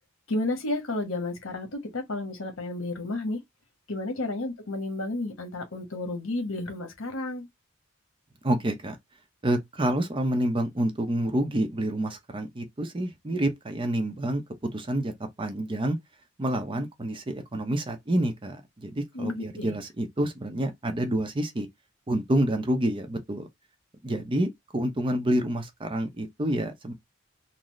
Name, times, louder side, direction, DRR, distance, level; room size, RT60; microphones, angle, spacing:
voice 1, 0.3-3.4 3.9-7.5 19.1-19.8, left 2 dB, 80° left, 1.2 m, -32 dB
voice 2, 8.4-9.0 9.4-15.1 15.4-16.0 16.4-21.7 22.1-23.5 24.0-26.9, right 1 dB, 25° right, 0.6 m, -28 dB
3.9 x 2.0 x 3.0 m
head